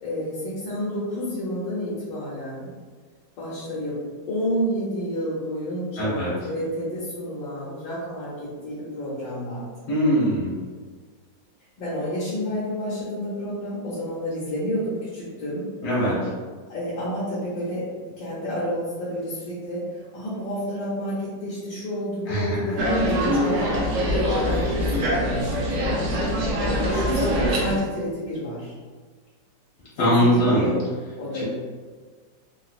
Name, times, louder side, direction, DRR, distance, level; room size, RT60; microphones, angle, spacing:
voice 1, 0.0-2.7 3.4-4.0 4.3-9.7 11.8-15.7 16.0-16.1 16.7-17.9 18.2-28.7 30.0-30.8 31.2-31.4, equal, 85° left, -9 dB, 1.6 m, -30 dB
voice 2, 6.0-6.3 9.9-10.5 15.8-16.3 22.3-22.6 30.0-30.7 31.3-31.4, equal, 45° left, -8 dB, 1.0 m, -21 dB
sound 1, 22.8-27.8, equal, 65° right, 0.8 m, -23 dB
3.9 x 2.4 x 2.4 m, 1.5 s
omnidirectional pair, 2.0 m